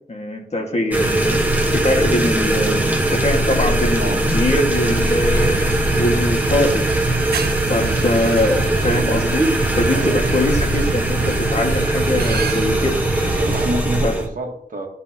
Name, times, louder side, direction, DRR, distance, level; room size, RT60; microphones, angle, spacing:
voice 1, 0.1-1.4 1.7-6.8 7.2-13.0 14.0-14.2, left 1 dB, 45° left, 1 dB, 1.6 m, -22 dB
sound 1, 0.9-14.3, right 1 dB, 10° right, 1.2 m, -20 dB
sound 2, 2.9-12.0, left 3 dB, 80° left, 2.5 m, -38 dB
freight train pass good detail, 4.7-13.6, right 6 dB, 80° right, 0.6 m, -29 dB
voice 2, 13.4-14.9, right 1 dB, 55° right, 1 dB, 1.5 m, -27 dB
12.5 x 5.6 x 2.8 m, 0.71 s
wide cardioid pair, 120°, 16 cm